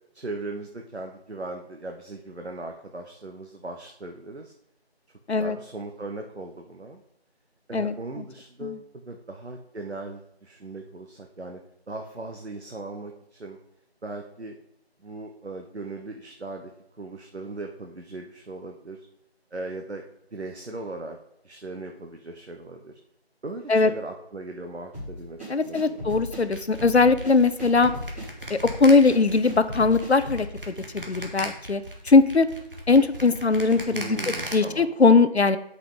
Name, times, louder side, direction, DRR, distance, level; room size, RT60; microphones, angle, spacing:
voice 1, 0.1-4.5 5.3-7.0 7.7-11.6 11.9-13.6 14.0-14.5 15.0-16.7 17.0-19.0 19.5-20.0 20.3-21.2 21.4-23.0 23.4-26.1 33.9-34.9, right 2 dB, 90° right, 3 dB, 1.0 m, -38 dB
sound 1, 24.9-30.5, equal, 15° right, 3.0 m, -37 dB
voice 2, 25.5-27.9 28.5-32.5 32.9-34.2 34.5-35.6, left 4 dB, 85° left, 13 dB, 0.7 m, -20 dB
sound 2, 26.5-34.5, right 1 dB, 55° right, 1.7 m, -37 dB
8.1 x 5.7 x 3.8 m, 0.81 s
figure-of-eight pair, 175°, 32 cm